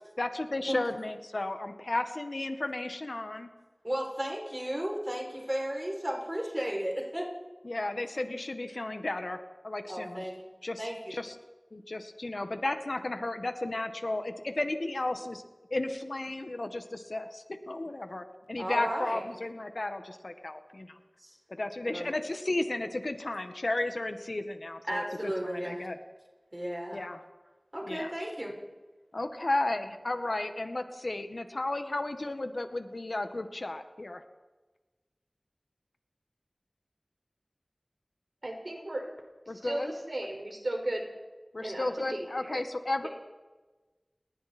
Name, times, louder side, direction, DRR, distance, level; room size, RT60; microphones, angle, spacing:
voice 1, 0.2-3.5 7.6-9.4 9.6-10.2 10.6-11.3 11.7-15.4 15.7-21.0 21.6-26.0 26.9-27.2 27.8-28.1 29.1-34.2 39.5-39.9 41.5-43.1, left 2 dB, 75° left, 7 dB, 1.7 m, -34 dB
voice 2, 3.8-7.3 9.9-10.3 10.8-11.1 18.6-19.2 21.2-21.4 21.8-22.1 24.9-25.8 26.5-27.0 27.7-28.5, equal, 25° right, -1 dB, 6.9 m, -34 dB
voice 3, 38.4-39.1 39.6-41.0 41.6-42.6, right 1 dB, 75° right, 1 dB, 5.5 m, -35 dB
29.5 x 20.0 x 4.5 m, 1.2 s
wide cardioid pair, 45°, 0 cm